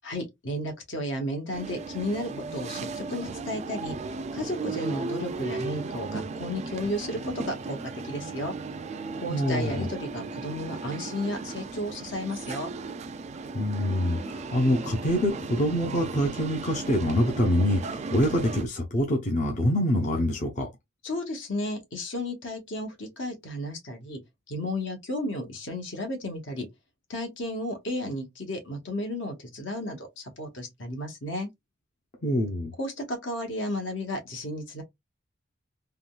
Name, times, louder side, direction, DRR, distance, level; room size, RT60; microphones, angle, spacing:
voice 1, 0.0-3.9 4.3-7.8 8.0-8.5 9.1-12.7 21.0-24.2 24.5-26.7 27.1-31.5 32.8-34.8, left 1 dB, 70° left, 1.1 m, -33 dB
sound 1, 1.5-18.6, right 3 dB, 35° right, 0.3 m, -36 dB
voice 2, 9.3-9.9 13.5-20.7 32.2-32.7, equal, 40° left, 0.6 m, -25 dB
3.6 x 2.2 x 2.3 m
head